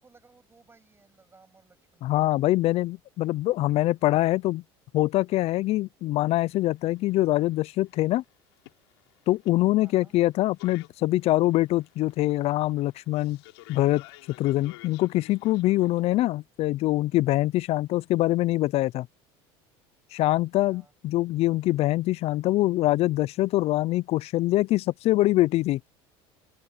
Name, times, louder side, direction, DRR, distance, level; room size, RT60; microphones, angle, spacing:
voice 1, 0.0-2.0 9.8-10.1 15.8-16.1 20.6-20.9, right 4 dB, 20° right, 6.8 m, -58 dB
voice 2, 2.0-4.6 4.9-8.2 9.3-13.4 13.7-14.0 14.4-19.1 20.1-25.8, left 16 dB, 50° left, 0.4 m, -24 dB
sound 1, 6.3-16.0, left 23 dB, 90° left, 4.1 m, -53 dB
open air
supercardioid pair, 110°, 13 cm